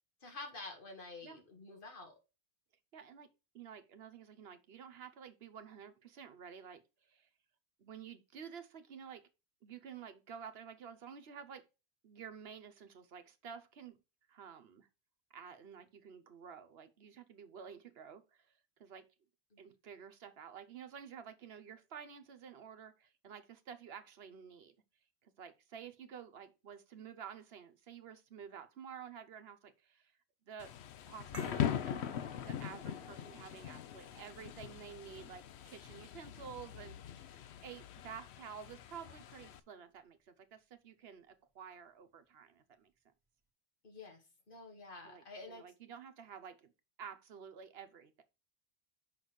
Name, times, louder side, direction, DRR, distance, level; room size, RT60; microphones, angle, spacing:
voice 1, 0.2-2.1 19.5-19.7 43.8-45.6, left 3 dB, 55° left, 2.0 m, -49 dB
voice 2, 2.9-3.3 3.5-7.3 7.8-9.3 9.6-11.7 12.0-14.0 14.3-14.9 15.3-18.5 18.8-19.1 19.6-24.7 25.2-30.1 30.5-30.8 31.1-32.1 32.4-42.9 45.0-46.7 47.0-48.2, right 7 dB, 70° right, 1.1 m, -51 dB
Thunder / Rain, 30.6-39.6, left 9 dB, 85° left, 0.9 m, -42 dB
sound 1, 31.3-36.4, right 1 dB, 30° right, 1.1 m, -57 dB
5.8 x 4.0 x 6.2 m
omnidirectional pair, 1.1 m